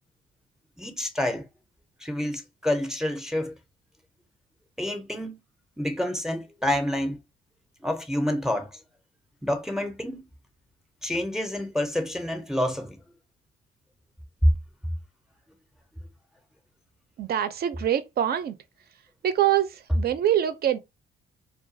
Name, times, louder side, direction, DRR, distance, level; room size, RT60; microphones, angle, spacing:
voice 1, 0.8-1.5 2.0-3.5 4.8-5.4 5.8-7.2 7.8-8.7 9.4-10.2 11.0-13.0, left 1 dB, ahead, 0.5 m, -28 dB
voice 2, 17.2-18.6 19.2-20.8, right 11 dB, 50° right, 0.5 m, -24 dB
2.3 x 2.2 x 2.6 m
cardioid pair, 90°, 20 cm